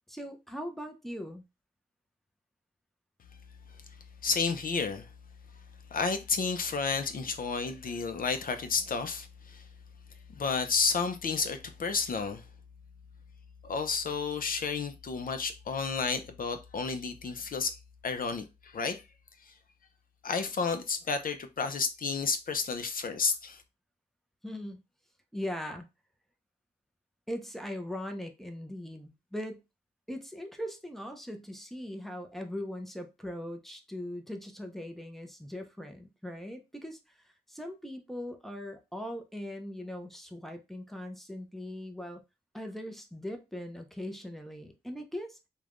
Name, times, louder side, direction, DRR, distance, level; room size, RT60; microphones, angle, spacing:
voice 1, 0.1-1.4 24.4-24.8 25.3-25.9 27.3-29.6 30.1-42.2 42.5-45.4, left 1 dB, ahead, 0.5 m, -40 dB
voice 2, 4.2-5.1 5.9-9.7 10.3-12.4 13.6-17.8 18.0-19.0 19.4-19.5 20.2-23.6, left 5 dB, 55° left, 0.5 m, -31 dB
3.2 x 2.2 x 2.4 m
wide cardioid pair, 85°, 17 cm